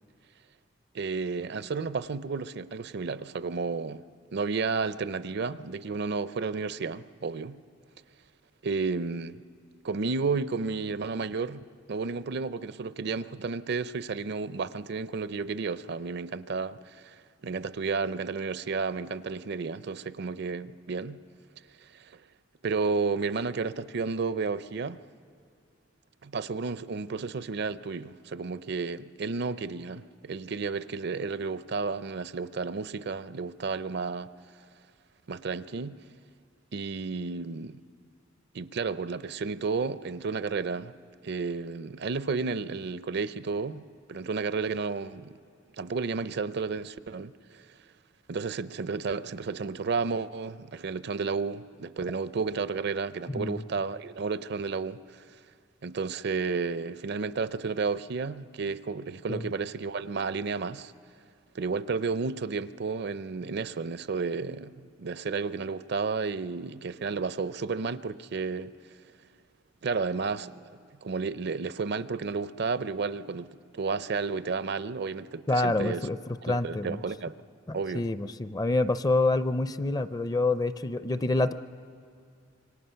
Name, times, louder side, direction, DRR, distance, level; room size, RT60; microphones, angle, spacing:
voice 1, 0.9-4.0 4.3-7.6 8.6-9.4 9.8-17.2 17.4-21.2 21.8-22.1 22.6-25.0 26.2-34.3 35.3-36.0 36.7-37.8 38.5-40.9 41.2-45.4 45.8-47.6 48.3-55.2 55.8-60.9 61.5-68.7 69.8-70.6 71.0-76.1 76.5-77.3 77.7-78.1, right 4 dB, 60° right, 0.5 m, -32 dB
voice 2, 53.3-53.6 59.3-59.5 75.5-77.0 77.7-81.5, left 2 dB, 20° left, 0.5 m, -27 dB
26.0 x 24.0 x 5.7 m
head